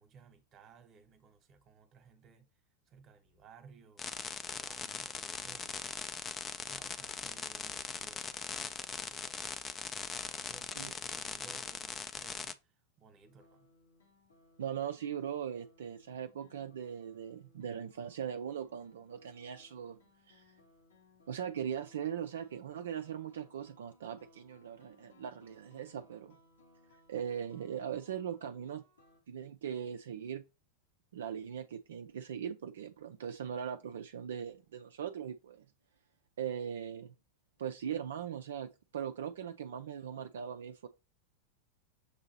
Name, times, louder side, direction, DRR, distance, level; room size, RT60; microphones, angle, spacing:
voice 1, 0.0-2.5 2.9-4.1 4.5-6.2 6.7-9.6 10.1-13.7, right 6 dB, 30° right, 1.0 m, -59 dB
sound 1, 4.0-12.5, left 5 dB, 20° left, 0.4 m, -40 dB
sound 2, 13.2-29.2, left 2 dB, 70° left, 1.1 m, -65 dB
voice 2, 14.6-20.0 20.3-20.6 21.3-26.4 27.1-28.8 29.3-30.4 31.1-35.7 36.4-37.1 37.6-40.9, right 8 dB, 60° right, 0.3 m, -40 dB
6.7 x 2.7 x 2.8 m
figure-of-eight pair, 90°, 0 cm